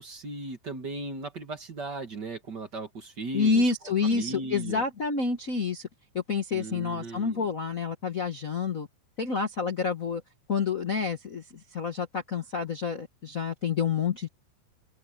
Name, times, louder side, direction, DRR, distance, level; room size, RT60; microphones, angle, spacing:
voice 1, 0.0-3.7 4.0-4.8 6.5-7.5, right 3 dB, 40° right, 2.0 m, -37 dB
voice 2, 3.3-5.9 6.1-8.9 9.2-10.2 10.5-14.3, left 5 dB, 80° left, 0.7 m, -28 dB
omnidirectional pair, 3.8 m